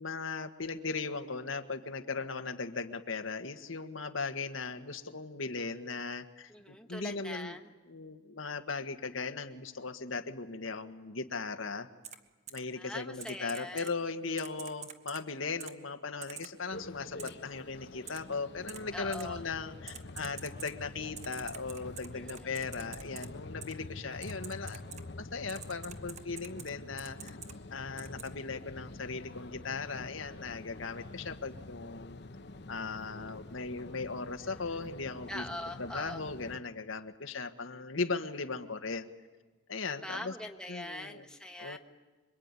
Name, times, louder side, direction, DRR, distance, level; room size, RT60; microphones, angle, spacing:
voice 1, 0.0-7.6 7.9-11.9 12.5-24.8 25.2-27.4 27.7-32.2 32.7-35.4 35.8-39.1 39.7-40.3 40.7-41.3 41.6-41.8, left 4 dB, 80° left, 7 dB, 1.5 m, -38 dB
voice 2, 6.5-7.7 12.8-13.9 18.9-19.4 22.1-22.5 35.3-36.2 39.9-41.8, left 1 dB, 5° left, 3 dB, 1.4 m, -42 dB
Typing, 12.0-12.2 12.5-12.6 13.2-13.9 14.4-15.2 15.6-15.7 16.2-16.5 17.2-17.3 18.1-18.2 18.7-18.8 19.1-19.2 19.9-20.7 21.2-23.3 23.6-23.7 24.2-25.0 25.5-26.7 27.0-27.5 28.0-28.3, right 7 dB, 35° right, 1.4 m, -45 dB
sound 1, 16.7-36.6, left 2 dB, 55° left, 1.0 m, -47 dB
26.5 x 23.5 x 9.7 m, 1.3 s
head